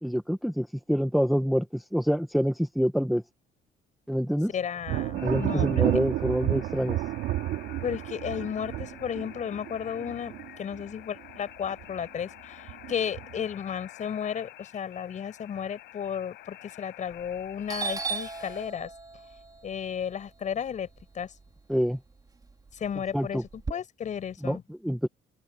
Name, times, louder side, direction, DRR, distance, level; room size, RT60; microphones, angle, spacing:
voice 1, 0.0-3.2 4.1-4.5 5.2-7.0 21.7-22.0 23.1-23.4 24.4-25.1, equal, ahead, 1.8 m, -26 dB
voice 2, 4.5-5.9 7.8-18.9 19.6-20.9 21.1-21.3 22.7-24.6, left 8 dB, 45° left, 6.9 m, -34 dB
Thunder, 4.8-11.3 11.6-12.2 12.7-13.5, right 16 dB, 85° right, 3.6 m, -31 dB
sound 1, 5.2-18.7, left 16 dB, 85° left, 6.0 m, -49 dB
Doorbell, 17.1-17.4 17.7-21.8 22.2-23.7, right 4 dB, 20° right, 3.5 m, -37 dB
open air
cardioid pair, 110°, 17 cm